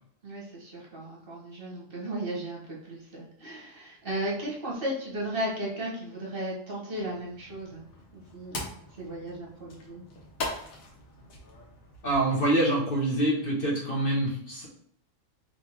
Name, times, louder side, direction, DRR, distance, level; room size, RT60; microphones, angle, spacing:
voice 1, 0.2-7.8 8.1-8.6 9.0-10.0, right 1 dB, 45° right, -4 dB, 1.3 m, -35 dB
sound 1, 6.9-12.3, left 2 dB, 90° left, 1.4 m, -41 dB
voice 2, 12.0-14.7, right 1 dB, 45° left, -2 dB, 1.1 m, -25 dB
3.4 x 3.2 x 4.3 m, 0.66 s
omnidirectional pair, 1.4 m